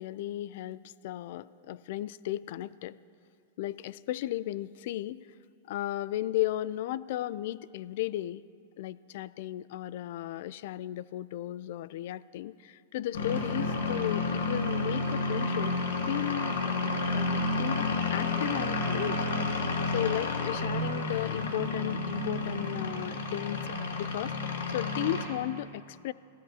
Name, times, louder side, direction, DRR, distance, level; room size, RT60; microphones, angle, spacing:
voice 1, 0.0-3.0 3.6-5.3 5.7-8.4 8.8-15.7 16.1-16.5 17.1-19.3 19.9-23.6 24.0-26.1, left 14 dB, 55° left, 18 dB, 0.3 m, -35 dB
sound 1, 13.1-25.2, left 3 dB, 90° left, 2.4 m, -31 dB
28.5 x 15.0 x 2.9 m, 2.4 s
supercardioid pair, 150°, 0 cm